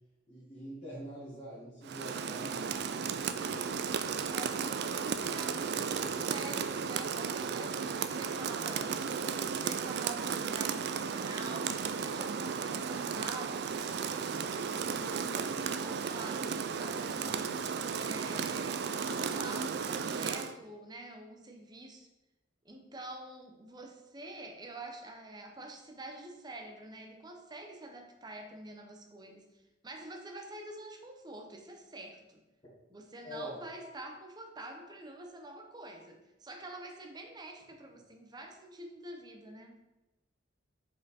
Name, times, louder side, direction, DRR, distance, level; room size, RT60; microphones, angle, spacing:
voice 1, 0.3-3.8 5.7-6.3 33.2-33.6, equal, 30° left, -11 dB, 1.8 m, -46 dB
Rain, 1.8-20.5, right 6 dB, 60° right, 0.4 m, -34 dB
voice 2, 4.3-17.6 17.9-22.1 22.6-29.5 29.8-32.4 32.9-39.8, right 2 dB, 20° right, 3 dB, 0.8 m, -47 dB
5.0 x 4.6 x 4.2 m, 1.0 s
head